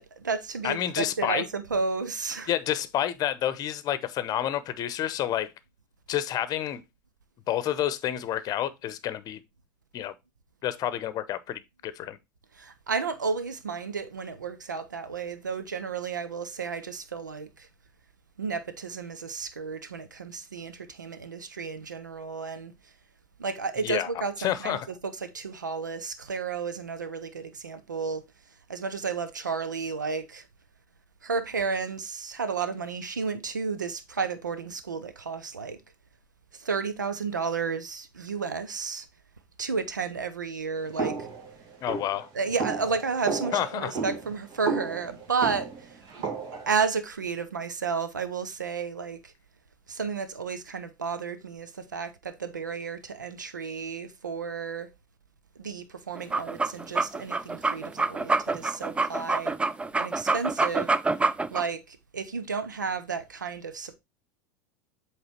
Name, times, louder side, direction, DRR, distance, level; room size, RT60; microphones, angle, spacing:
voice 1, 0.0-2.5 12.5-17.7 18.4-22.9 23.4-28.2 28.7-30.5 31.2-35.8 36.5-39.1 39.6-41.2 42.3-46.0 46.7-49.3 49.9-54.9 55.6-59.5 60.0-60.9 61.5-64.0, right 5 dB, 85° right, 0.7 m, -32 dB
voice 2, 0.6-1.5 2.5-5.5 6.1-6.8 7.5-9.4 9.9-10.1 10.6-12.2 23.8-24.9 41.8-42.3 43.5-43.9, left 11 dB, 40° left, 0.8 m, -29 dB
sound 1, 41.0-46.7, right 5 dB, 50° right, 2.0 m, -33 dB
sound 2, 56.2-61.6, right 3 dB, 10° right, 0.5 m, -26 dB
7.9 x 3.3 x 4.3 m
hypercardioid pair, 80°, 10 cm